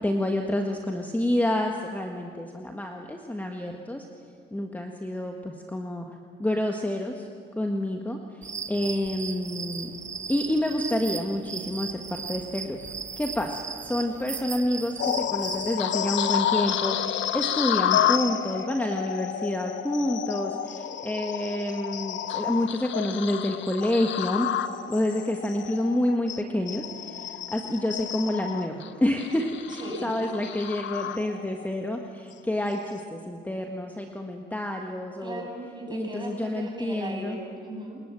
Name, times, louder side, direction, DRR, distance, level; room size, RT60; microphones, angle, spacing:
voice 1, 0.0-4.1 4.5-7.3 7.5-9.9 10.3-12.8 13.2-24.5 24.9-35.5 35.9-37.4, left 1 dB, 10° left, 3 dB, 1.6 m, -28 dB
sound 1, 8.4-15.8, right 5 dB, 35° right, 1.4 m, -37 dB
sound 2, 15.0-31.7 32.1-32.3 32.9-33.0, left 10 dB, 70° left, 1.0 m, -30 dB
voice 2, 29.8-30.1 35.2-38.0, right 1 dB, 20° right, 1 dB, 7.4 m, -37 dB
28.5 x 20.5 x 7.7 m, 2.3 s
cardioid pair, 90°, 20 cm